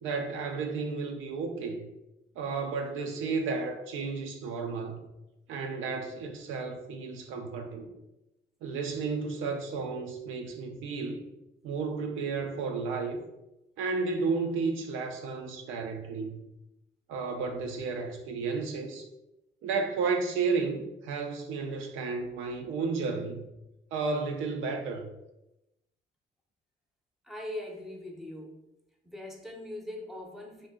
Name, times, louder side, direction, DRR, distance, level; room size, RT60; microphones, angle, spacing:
voice 1, 0.0-1.9 2.4-5.0 5.5-7.9 8.6-11.2 11.6-13.2 13.8-16.5 17.1-19.1 19.6-23.5 23.9-25.1, right 4 dB, 80° right, 0.5 m, -32 dB
voice 2, 27.2-28.6 29.0-30.7, left 1 dB, ahead, 0.6 m, -41 dB
2.6 x 2.5 x 3.5 m
cardioid pair, 90°, 20 cm